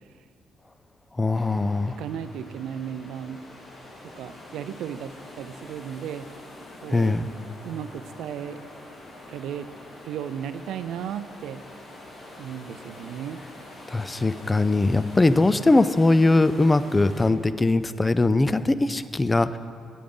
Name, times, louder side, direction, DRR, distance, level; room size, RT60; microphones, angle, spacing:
voice 1, 1.2-2.0 6.9-7.3 13.9-19.6, left 2 dB, 20° left, 14 dB, 0.3 m, -21 dB
sound 1, 1.3-17.3, left 1 dB, 55° left, 1.6 m, -45 dB
voice 2, 1.9-3.4 4.0-6.3 6.8-7.2 7.6-8.6 9.3-9.7 10.0-11.6 12.4-13.4 15.5-15.6, right 9 dB, 80° right, 12 dB, 0.3 m, -35 dB
9.2 x 8.5 x 3.8 m, 2.3 s
cardioid pair, 90°, 0 cm